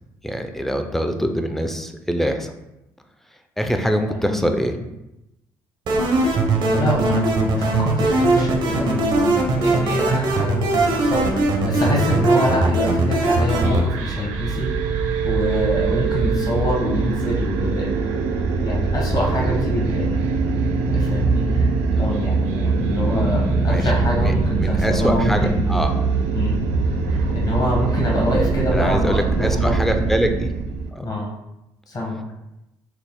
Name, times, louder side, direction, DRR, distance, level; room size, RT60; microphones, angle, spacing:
voice 1, 0.2-2.5 3.6-4.7 23.7-23.8 24.2-24.3 24.6-25.9 28.7-30.5 30.9-31.1, equal, 5° left, 5 dB, 0.5 m, -23 dB
voice 2, 4.1-4.4 6.5-18.3 18.6-20.1 20.9-25.6 26.3-26.6 27.0-29.7 31.0-31.3 31.9-32.2, left 1 dB, 45° left, -2 dB, 1.1 m, -25 dB
sound 1, 5.9-13.8, right 2 dB, 60° right, 0.8 m, -20 dB
sound 2, 13.5-30.9, right 4 dB, 85° right, 0.4 m, -22 dB
4.6 x 2.0 x 3.6 m, 0.91 s
supercardioid pair, 65°, 9 cm